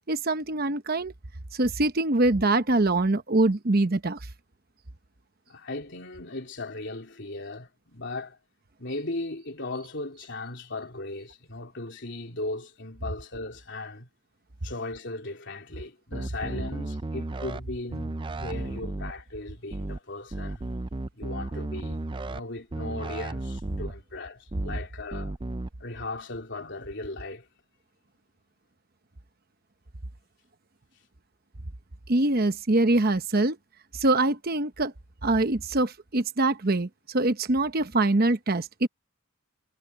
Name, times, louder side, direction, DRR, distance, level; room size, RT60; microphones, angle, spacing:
voice 1, 0.1-1.1 1.5-4.2 32.1-33.6 33.9-34.9 35.2-38.9, right 2 dB, 45° right, 1.0 m, -24 dB
voice 2, 5.5-8.4 8.8-14.1 14.6-20.7 21.1-25.4 25.8-27.5, left 2 dB, 55° left, 3.4 m, -37 dB
sound 1, 16.1-17.6 17.9-19.1 19.7-20.0 20.3-22.4 22.7-23.9 24.5-24.8 25.1-25.7, right 2 dB, 25° right, 0.4 m, -34 dB
head